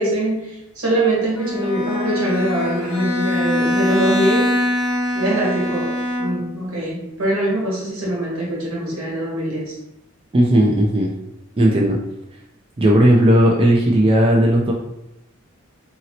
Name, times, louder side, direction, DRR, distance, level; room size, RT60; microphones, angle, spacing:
voice 1, 0.0-4.5 5.1-9.8, right 1 dB, 75° right, -4 dB, 1.2 m, -23 dB
Bowed string instrument, 1.4-6.6, left 1 dB, 75° left, 0.6 m, -23 dB
voice 2, 10.3-11.1 11.6-12.0 12.8-14.7, right 1 dB, 25° right, -2 dB, 0.4 m, -15 dB
2.9 x 2.8 x 2.8 m, 0.89 s
head